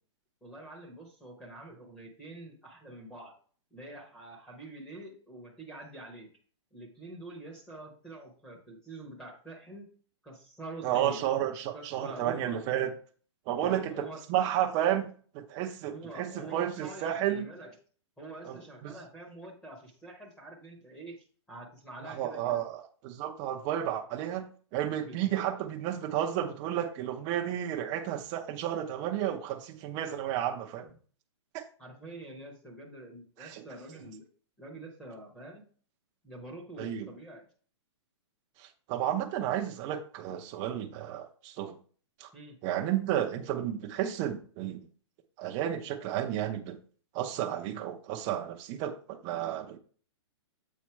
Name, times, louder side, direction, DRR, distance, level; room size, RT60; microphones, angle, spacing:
voice 1, 0.4-3.3 3.7-6.3 6.7-9.9 10.2-11.2 11.7-12.7 13.6-14.2 15.8-17.7 18.2-22.6 25.0-25.4 31.8-34.3 34.6-35.6 36.2-37.5 42.3-42.6, right 2 dB, 5° left, -1 dB, 1.0 m, -46 dB
voice 2, 10.8-12.9 13.5-17.4 18.4-18.6 18.8-18.9 22.0-24.5 24.7-30.9 31.5-31.6 33.4-33.6 36.8-37.1 38.6-41.8 42.2-42.3 42.6-44.8 45.4-46.8 47.1-49.8, right 11 dB, 20° right, 3 dB, 0.6 m, -32 dB
7.4 x 4.0 x 4.5 m, 0.43 s
hypercardioid pair, 170°, 15 cm